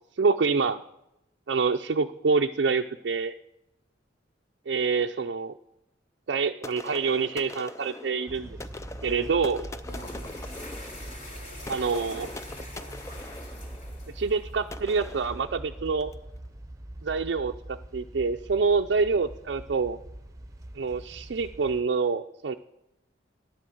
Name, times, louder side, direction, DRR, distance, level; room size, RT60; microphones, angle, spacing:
voice 1, 0.2-0.8 1.5-3.3 4.7-5.5 6.3-8.6 9.0-9.7 11.7-12.3 14.1-16.1 17.0-20.0 20.8-22.5, right 4 dB, 60° right, 4 dB, 0.4 m, -26 dB
sound 1, 6.6-16.3, left 2 dB, 15° left, 0.4 m, -43 dB
sound 2, 8.3-21.8, right 1 dB, 15° right, 0.9 m, -43 dB
sound 3, 9.7-14.8, left 1 dB, 45° left, 3.5 m, -44 dB
11.5 x 10.5 x 7.6 m, 0.89 s
head